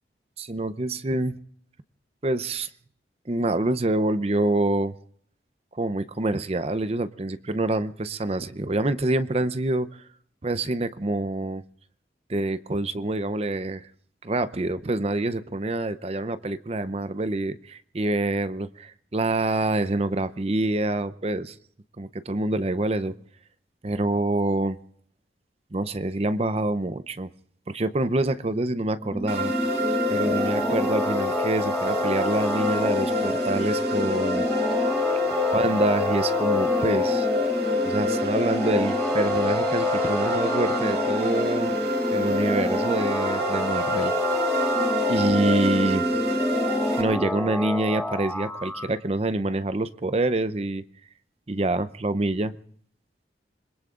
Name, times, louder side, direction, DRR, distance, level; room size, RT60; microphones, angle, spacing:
voice 1, 0.4-1.4 2.2-2.7 3.3-4.9 5.7-9.9 10.4-11.6 12.3-13.9 14.2-21.6 22.0-23.1 23.8-24.8 25.7-27.3 27.7-29.5 30.1-34.5 35.5-37.3 37.8-41.7 42.1-44.1 45.1-46.1 47.0-50.8 51.5-52.5, right 2 dB, 35° right, 13 dB, 0.6 m, -26 dB
sound 1, 29.0-48.9, equal, ahead, 1.1 m, -29 dB
sound 2, 29.3-47.0, left 2 dB, 75° right, 4.8 m, -26 dB
27.5 x 21.5 x 2.5 m, 0.62 s
head